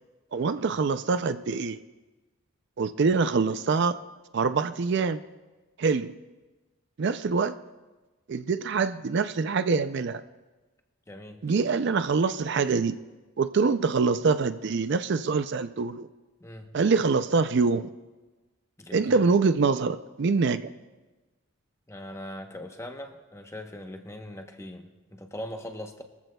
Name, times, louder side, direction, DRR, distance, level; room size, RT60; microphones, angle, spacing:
voice 1, 0.3-1.8 2.8-4.0 4.3-5.2 5.8-6.1 7.0-7.6 8.3-10.2 11.4-13.0 13.4-16.1 16.7-17.9 18.9-20.7, right 4 dB, 55° right, 11 dB, 0.4 m, -25 dB
voice 2, 11.1-11.4 16.4-16.8 18.8-19.2 21.9-26.0, left 1 dB, 15° left, 5 dB, 0.9 m, -41 dB
23.5 x 14.5 x 2.3 m, 1.2 s
head